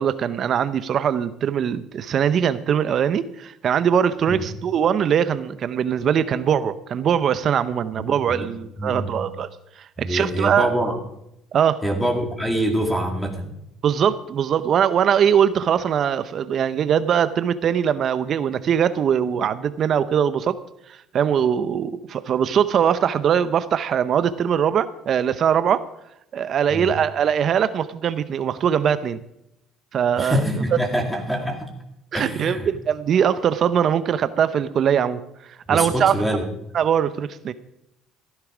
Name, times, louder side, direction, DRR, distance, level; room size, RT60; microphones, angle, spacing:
voice 1, 0.0-9.5 10.0-10.7 11.5-11.8 13.8-20.6 21.1-25.8 26.3-29.2 29.9-30.4 32.1-35.2 35.7-36.1 36.7-37.5, right 8 dB, 50° right, 14 dB, 0.7 m, -21 dB
voice 2, 8.0-8.5 8.8-9.3 10.0-11.0 11.8-13.5 26.7-26.9 30.2-31.7 32.1-32.7 35.7-36.5, equal, 5° left, 3 dB, 2.2 m, -25 dB
15.5 x 10.5 x 5.0 m, 0.81 s
cardioid pair, 110°, 0 cm